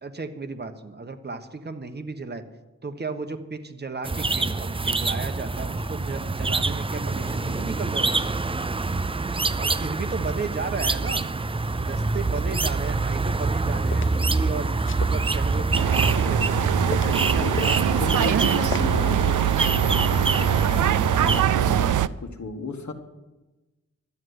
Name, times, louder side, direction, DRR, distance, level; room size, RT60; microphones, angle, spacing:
voice 1, 0.0-2.4 2.8-8.4 9.6-11.2 11.8-14.7 15.0-17.9 18.1-18.5, right 3 dB, 35° right, 7 dB, 1.2 m, -34 dB
sound 1, 4.0-21.4, right 3 dB, 20° right, 0.4 m, -26 dB
sound 2, 13.7-14.1 14.8-16.1 16.5-17.3 17.6-18.5 18.7-18.8, left 6 dB, 45° left, 0.5 m, -36 dB
sound 3, 15.7-22.1, right 11 dB, 90° right, 0.5 m, -23 dB
voice 2, 16.9-17.7 18.0-22.9, left 4 dB, 70° left, 6 dB, 1.6 m, -34 dB
12.5 x 7.8 x 9.6 m, 1.1 s
wide cardioid pair, 100°, 30 cm